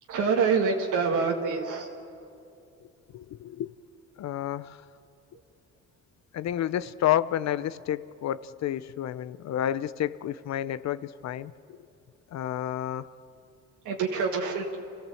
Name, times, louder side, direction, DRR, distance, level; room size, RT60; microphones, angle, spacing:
voice 1, 0.1-1.9 13.9-14.8, right 5 dB, 80° right, 0 dB, 1.8 m, -26 dB
voice 2, 3.1-3.8 4.2-4.8 6.3-11.8 12.3-13.1, left 11 dB, 60° left, 16 dB, 0.6 m, -30 dB
28.0 x 15.0 x 7.8 m, 2.6 s
cardioid pair, 90°, 30 cm